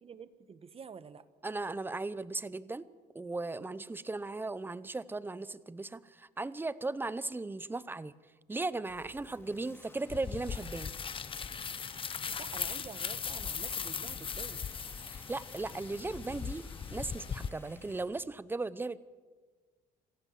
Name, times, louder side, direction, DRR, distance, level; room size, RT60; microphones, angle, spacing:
voice 1, 0.0-1.2 12.1-14.7, right 6 dB, 35° right, 14 dB, 1.3 m, -48 dB
voice 2, 1.4-2.9 3.1-8.1 8.5-10.9 15.1-16.6 16.9-19.0, right 3 dB, 10° right, 17 dB, 0.8 m, -37 dB
sound 1, 8.9-18.0, left 2 dB, 15° left, 4.2 m, -56 dB
sound 2, 10.1-17.5, left 6 dB, 30° left, 0.9 m, -39 dB
26.5 x 15.5 x 7.5 m, 1.4 s
cardioid pair, 110°, 17 cm